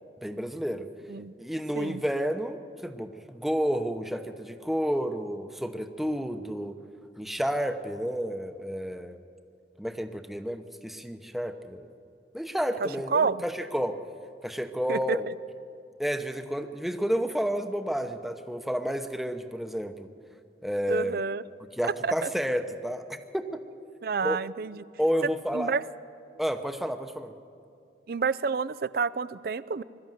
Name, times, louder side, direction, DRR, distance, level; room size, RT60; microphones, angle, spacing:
voice 1, 0.2-0.9 1.4-6.7 7.2-9.2 9.8-11.9 12.3-14.0 14.4-15.3 16.0-20.1 20.6-21.2 21.8-23.6 24.2-24.4 25.0-25.7 26.4-27.3, equal, ahead, 7 dB, 0.8 m, -30 dB
voice 2, 12.8-13.4 14.9-15.2 20.9-21.4 22.0-22.3 24.0-24.8 25.5-25.8 28.1-29.8, right 5 dB, 55° right, 18 dB, 0.5 m, -29 dB
21.5 x 13.0 x 9.2 m, 2.5 s
head